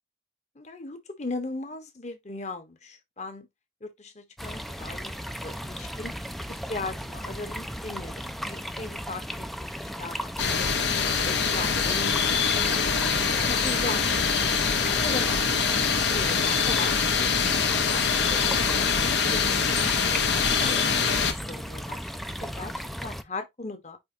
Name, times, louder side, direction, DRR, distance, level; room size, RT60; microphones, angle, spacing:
voice 1, 0.5-3.5 3.8-5.1 5.4-6.1 6.5-10.8 11.2-12.9 13.3-15.4 16.0-16.9 17.9-18.4 18.7-18.9 19.3-22.1 22.4-22.7 23.0-24.0, left 2 dB, 40° left, 1.3 m, -38 dB
sound 1, 4.4-23.2, equal, ahead, 0.4 m, -36 dB
sound 2, 10.4-21.3, left 6 dB, 75° left, 1.2 m, -24 dB
9.5 x 3.5 x 2.8 m
head